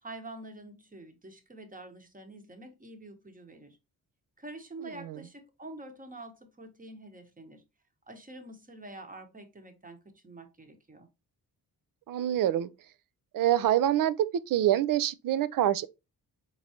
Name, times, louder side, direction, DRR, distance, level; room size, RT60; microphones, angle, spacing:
voice 1, 0.0-3.8 4.4-7.6 8.1-11.1, right 2 dB, 25° right, 1.1 m, -47 dB
voice 2, 12.1-12.7 13.3-14.2 14.5-15.9, right 12 dB, 65° right, 0.5 m, -25 dB
4.7 x 3.8 x 2.7 m
cardioid pair, 100°, 35 cm